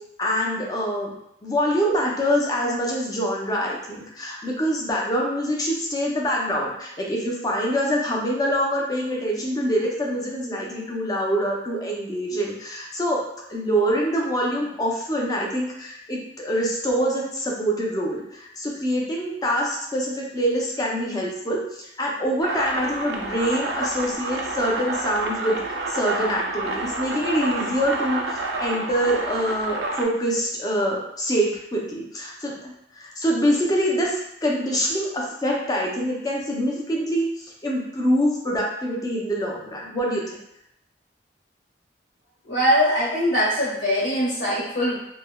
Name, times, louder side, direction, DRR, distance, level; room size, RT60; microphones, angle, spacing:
voice 1, 0.2-1.1 1.4-13.2 13.5-25.6 25.9-28.2 28.6-40.4, equal, 20° left, -2 dB, 0.5 m, -25 dB
sound 1, 22.4-30.0, right 2 dB, 75° right, 0.4 m, -29 dB
voice 2, 42.4-45.0, equal, 75° left, -8 dB, 1.3 m, -22 dB
3.1 x 2.1 x 2.2 m, 0.78 s
head